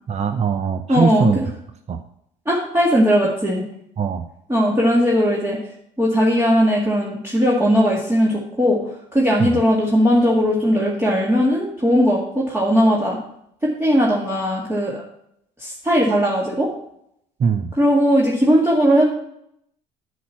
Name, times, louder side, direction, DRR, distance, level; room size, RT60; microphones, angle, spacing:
voice 1, 0.1-1.4 1.9-2.0 4.0-4.2 9.4-9.5 17.4-17.7, right 6 dB, 35° right, 8 dB, 0.7 m, -21 dB
voice 2, 0.9-1.3 2.5-3.6 4.5-5.6 6.0-8.8 9.1-13.2 13.6-15.0 15.6-16.7 17.8-19.0, equal, 10° right, -5 dB, 2.2 m, -18 dB
8.1 x 4.7 x 7.4 m, 0.74 s
hypercardioid pair, 70°, 20 cm